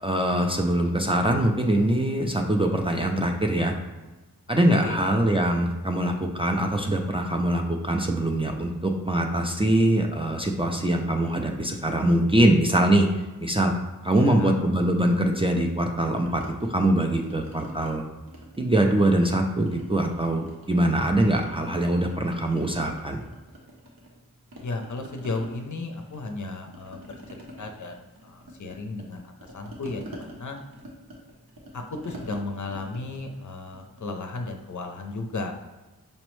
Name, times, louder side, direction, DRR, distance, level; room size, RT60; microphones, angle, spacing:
voice 1, 0.0-3.7 4.5-13.1 13.4-13.7 14.0-16.4 16.7-18.0 18.6-23.2, right 1 dB, 15° right, 1 dB, 0.3 m, -23 dB
voice 2, 4.7-5.0 14.1-14.5 24.6-30.6 31.7-35.6, left 3 dB, 60° left, 4 dB, 0.5 m, -35 dB
sound 1, 16.3-17.9 18.3-19.3 19.7-21.5 21.8-24.2 24.5-34.3, right 1 dB, 75° right, 0.9 m, -46 dB
5.3 x 2.0 x 3.0 m, 1.2 s
wide cardioid pair, 75°, 35 cm